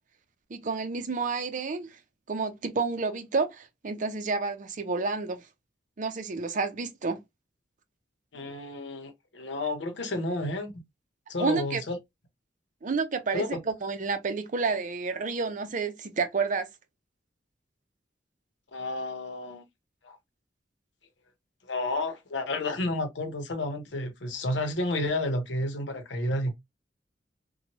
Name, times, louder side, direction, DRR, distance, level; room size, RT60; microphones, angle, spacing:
voice 1, 0.5-1.9 2.3-5.4 6.0-7.2 8.4-8.5 11.4-11.8 12.8-16.7, right 4 dB, 45° right, 0.5 m, -30 dB
voice 2, 8.3-10.7 11.3-12.0 13.3-13.6 18.7-19.6 20.0-20.2 21.6-26.5, left 2 dB, 85° left, 0.8 m, -31 dB
3.0 x 2.2 x 2.9 m
head